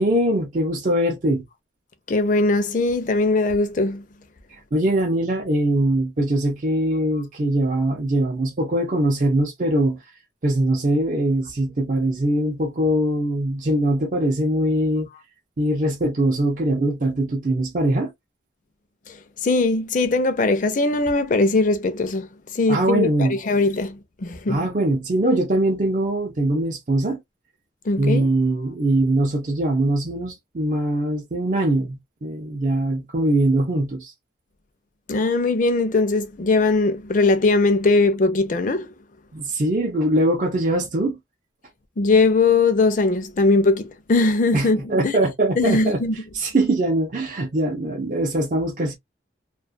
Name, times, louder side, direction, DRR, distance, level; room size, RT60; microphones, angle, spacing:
voice 1, 0.0-1.4 4.7-10.0 10.4-15.1 15.6-18.1 22.7-23.4 24.5-27.2 28.0-34.1 39.3-41.2 44.5-46.0 46.3-48.9, right 1 dB, 45° right, 0.5 m, -22 dB
voice 2, 2.1-4.0 19.4-24.6 27.9-28.3 35.1-38.9 42.0-45.1 45.6-46.2, left 3 dB, 45° left, 0.5 m, -20 dB
2.4 x 2.3 x 2.4 m
head